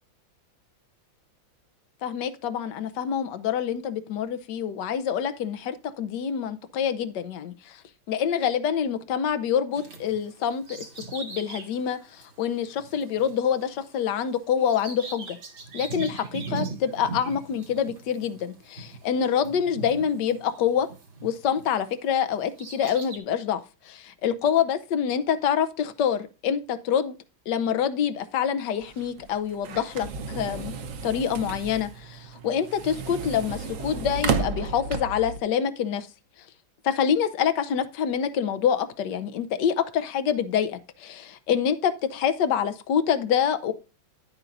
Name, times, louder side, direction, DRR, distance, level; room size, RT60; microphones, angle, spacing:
voice 1, 2.0-7.8 8.1-10.9 11.1-15.4 15.7-20.9 21.2-27.2 27.5-30.7 31.0-36.1 36.8-43.7, left 8 dB, 65° left, 1.4 m, -26 dB
Bird vocalization bird call bird song, 9.7-21.8 22.3-23.2, right 4 dB, 80° right, 3.0 m, -40 dB
sound 1, 28.8-35.4, right 4 dB, 55° right, 1.0 m, -32 dB
10.5 x 9.0 x 2.6 m
omnidirectional pair, 2.1 m